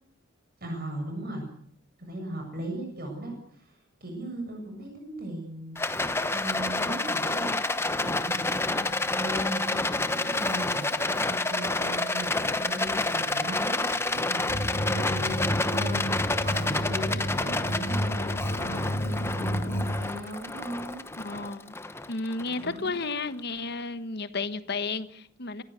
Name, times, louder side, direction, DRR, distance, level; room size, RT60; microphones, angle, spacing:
voice 1, 0.6-1.4 2.0-7.5 8.0-21.0 22.5-23.0, right 1 dB, 45° right, 7.4 m, -38 dB
Rattle, 5.7-23.1, left 2 dB, 10° left, 1.0 m, -29 dB
sound 1, 14.5-20.1, equal, 30° left, 2.3 m, -31 dB
voice 2, 21.2-21.7 22.1-25.6, left 3 dB, 50° left, 1.3 m, -32 dB
27.5 x 16.0 x 8.1 m
head